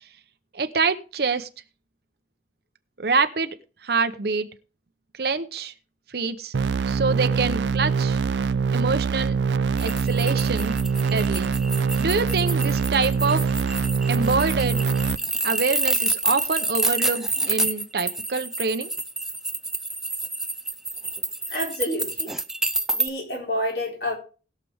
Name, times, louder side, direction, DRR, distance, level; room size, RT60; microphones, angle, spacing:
voice 1, 0.5-1.5 3.0-3.6 3.8-4.5 5.2-5.7 6.1-6.5 6.9-8.2 8.7-9.4 9.8-10.8 11.1-11.5 12.0-13.5 14.1-14.8 15.4-18.9, right 4 dB, 60° right, 9 dB, 0.8 m, -25 dB
sound 1, 6.5-15.2, right 5 dB, 85° right, 0.4 m, -24 dB
sound 2, 9.8-23.1, right 2 dB, 5° right, 0.5 m, -28 dB
voice 2, 21.5-22.3 22.9-24.2, left 1 dB, 60° left, 0 dB, 4.4 m, -28 dB
20.0 x 6.7 x 3.5 m, 0.35 s
head